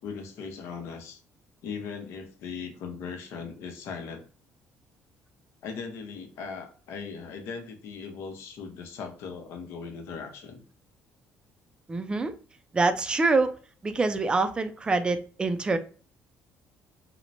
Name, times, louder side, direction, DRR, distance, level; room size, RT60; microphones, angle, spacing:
voice 1, 0.0-1.2 1.6-4.2 5.6-10.6, left 5 dB, 75° left, 0.7 m, -39 dB
voice 2, 11.9-12.3 12.7-13.5 13.8-15.8, right 3 dB, 20° right, 0.3 m, -25 dB
2.9 x 2.0 x 2.5 m
cardioid pair, 100°, 5 cm